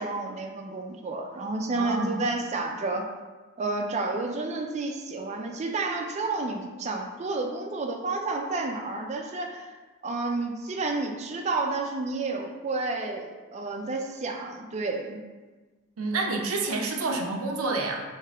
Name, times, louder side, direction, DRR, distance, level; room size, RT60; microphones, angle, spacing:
voice 1, 0.0-3.0 3.6-9.7 10.0-15.2, right 3 dB, 35° right, 2 dB, 0.4 m, -30 dB
voice 2, 1.7-2.2 16.0-18.0, right 3 dB, 90° right, 1 dB, 0.6 m, -28 dB
3.5 x 2.8 x 3.3 m, 1.3 s
head